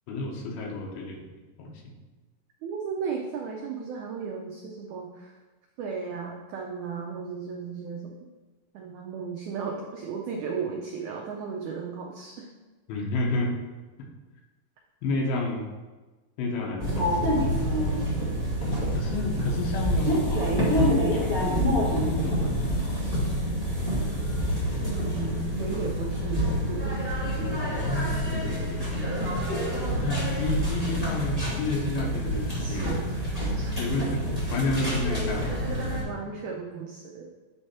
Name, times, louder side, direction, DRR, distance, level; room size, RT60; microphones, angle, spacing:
voice 1, 0.1-1.2 1.6-1.7 12.9-13.5 15.0-15.7 16.4-17.7 18.9-20.4 21.1-23.3 27.5-28.9 29.9-33.0 33.8-34.2 34.5-35.5, left 2 dB, 85° left, 0 dB, 2.9 m, -31 dB
voice 2, 2.6-5.3 5.8-8.1 8.7-12.5 24.8-27.0 32.6-33.1 33.5-33.8 36.0-37.3, right 5 dB, 85° right, 0 dB, 1.7 m, -35 dB
sound 1, 16.8-36.0, equal, 20° left, 1.1 m, -27 dB
9.1 x 3.3 x 4.3 m, 1.2 s
omnidirectional pair, 4.2 m